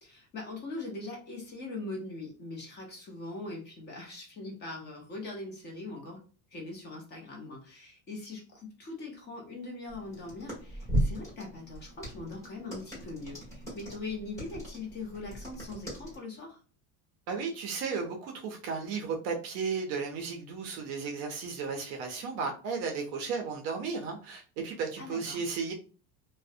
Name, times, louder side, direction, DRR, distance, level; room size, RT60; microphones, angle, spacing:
voice 1, 0.0-6.2 6.5-16.6 25.0-25.4, left 2 dB, 25° left, 0 dB, 0.5 m, -41 dB
sound 1, 9.9-16.2, equal, 10° left, 1.0 m, -37 dB
voice 2, 17.3-25.7, right 5 dB, 40° right, 2 dB, 0.4 m, -34 dB
2.4 x 2.0 x 2.5 m, 0.38 s
cardioid pair, 165°, 41 cm